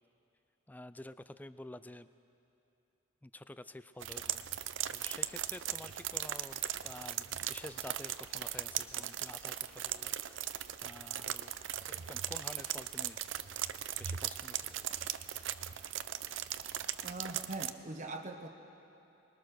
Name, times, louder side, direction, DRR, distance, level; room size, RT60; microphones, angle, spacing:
voice 1, 0.7-2.1 3.2-4.5 4.9-11.5 11.8-13.2 14.0-14.7, left 1 dB, 10° left, 14 dB, 0.4 m, -49 dB
sound 1, 4.0-17.7, right 11 dB, 65° right, 0.6 m, -38 dB
voice 2, 17.0-18.5, right 2 dB, 35° right, 3 dB, 1.1 m, -42 dB
25.0 x 21.0 x 6.5 m, 2.9 s
head